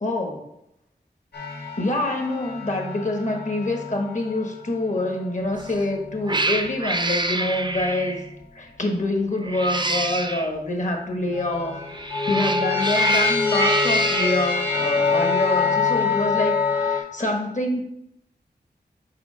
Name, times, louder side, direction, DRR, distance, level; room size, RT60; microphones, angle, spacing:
voice 1, 0.0-0.4 1.8-8.2 8.5-17.9, left 1 dB, 45° left, 3 dB, 1.3 m, -26 dB
sound 1, 1.3-6.8 7.4-8.4 9.6-10.2 11.3-17.0, left 4 dB, 75° left, 1.5 m, -26 dB
Cat, 5.5-5.8 6.3-8.3 9.4-10.5 11.8-14.4, right 2 dB, 25° right, 0.5 m, -27 dB
4.9 x 4.5 x 4.9 m, 0.81 s
wide cardioid pair, 50°, 17 cm